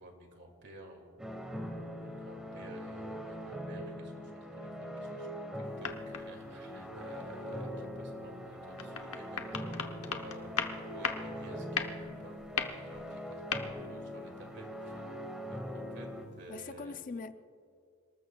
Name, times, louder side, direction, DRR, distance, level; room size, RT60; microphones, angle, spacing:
voice 1, 0.0-1.4 2.0-13.5 13.9-16.1 16.4-16.9, right 1 dB, 50° right, 2.3 m, -53 dB
sound 1, 1.2-16.3, equal, 5° right, 1.4 m, -42 dB
sound 2, 5.6-6.4 8.7-11.4 11.7-14.0, left 6 dB, 70° left, 0.9 m, -38 dB
voice 2, 16.5-17.3, left 4 dB, 35° left, 0.4 m, -43 dB
28.5 x 19.5 x 2.3 m
head